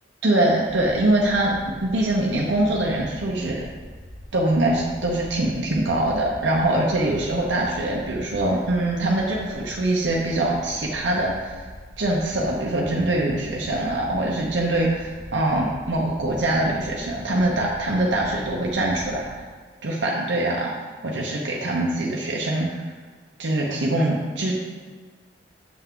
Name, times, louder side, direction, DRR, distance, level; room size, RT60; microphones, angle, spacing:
voice 1, 0.2-3.6 4.3-11.7 12.0-19.3 19.8-20.7 21.0-22.9 23.4-24.6, right 1 dB, 80° right, -3 dB, 0.8 m, -23 dB
sound 1, 0.6-19.3, equal, 55° left, 1.3 m, -42 dB
7.0 x 5.8 x 3.7 m, 1.5 s
head